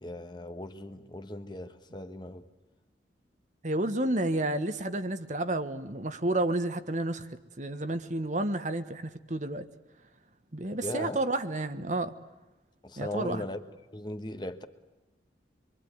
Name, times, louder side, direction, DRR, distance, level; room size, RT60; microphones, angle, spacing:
voice 1, 0.0-2.5 10.7-11.2 12.8-13.6 13.9-14.6, left 1 dB, 25° left, 1.3 m, -38 dB
voice 2, 3.6-7.3 7.6-9.6 10.5-12.1 13.0-13.5, right 1 dB, 40° right, 1.4 m, -30 dB
26.0 x 24.0 x 9.4 m
head